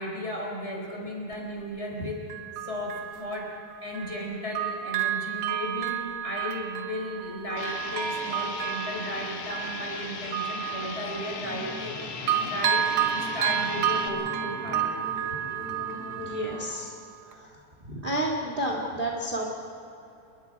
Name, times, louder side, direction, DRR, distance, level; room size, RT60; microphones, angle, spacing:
voice 1, 0.0-2.2 2.6-14.9, equal, 15° left, -1 dB, 4.0 m, -35 dB
Bell, 1.3-1.4 2.3-4.3 4.5-12.0 12.3-16.9 17.3-17.4, right 10 dB, 75° right, 1.4 m, -31 dB
sound 1, 7.6-14.1, left 6 dB, 85° left, 3.4 m, -38 dB
sound 2, 11.4-16.6, left 1 dB, 45° left, 6.0 m, -41 dB
voice 2, 16.2-17.0 17.2-17.6 17.8-19.4, right 1 dB, 25° right, -1 dB, 1.3 m, -31 dB
28.5 x 21.0 x 4.8 m, 2.8 s
omnidirectional pair, 4.3 m